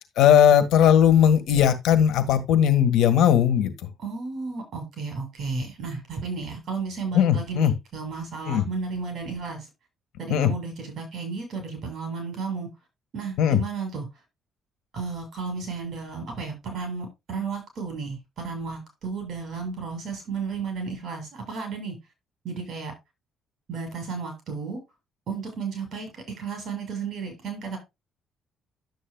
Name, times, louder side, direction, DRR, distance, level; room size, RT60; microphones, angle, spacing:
voice 1, 0.2-3.7 7.2-7.7 8.5-8.6 10.3-10.5 13.4-13.6, left 9 dB, 80° left, 1.6 m, -18 dB
voice 2, 4.0-9.7 10.2-12.7 13.1-14.1 14.9-22.0 22.4-22.9 23.7-24.8 25.3-27.8, right 5 dB, 50° right, 7.3 m, -33 dB
11.5 x 8.6 x 2.3 m
cardioid pair, 130°, 0 cm